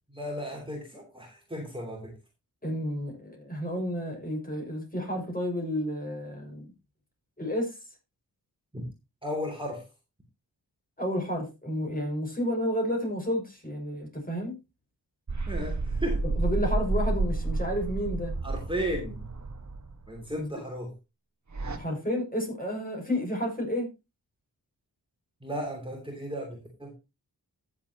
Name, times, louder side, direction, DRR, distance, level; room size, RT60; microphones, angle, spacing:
voice 1, 0.1-2.1 8.7-8.9 9.2-9.8 15.5-16.2 18.4-19.2 20.1-20.9 25.4-26.9, equal, 15° right, 3.0 m, -35 dB
voice 2, 2.6-6.7 7.4-7.8 11.0-14.5 16.4-18.3 20.4-20.5 21.7-23.9, equal, 20° left, 6.2 m, -31 dB
sound 1, 15.3-20.2 21.5-21.8, right 3 dB, 45° right, 1.6 m, -30 dB
14.0 x 7.4 x 2.9 m
cardioid pair, 45°, 40 cm